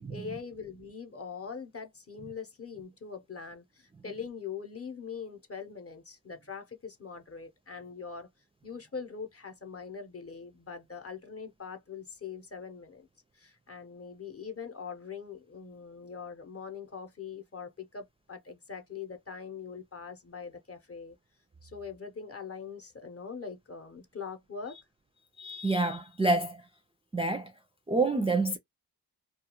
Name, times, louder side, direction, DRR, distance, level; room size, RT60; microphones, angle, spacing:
voice 1, 0.0-8.3 8.6-13.1 13.3-21.2 21.6-24.8, left 6 dB, 35° left, 0.7 m, -42 dB
voice 2, 25.4-26.6 27.1-27.5 27.9-28.6, right 2 dB, 15° right, 0.3 m, -28 dB
2.3 x 2.3 x 2.9 m
cardioid pair, 55°, 39 cm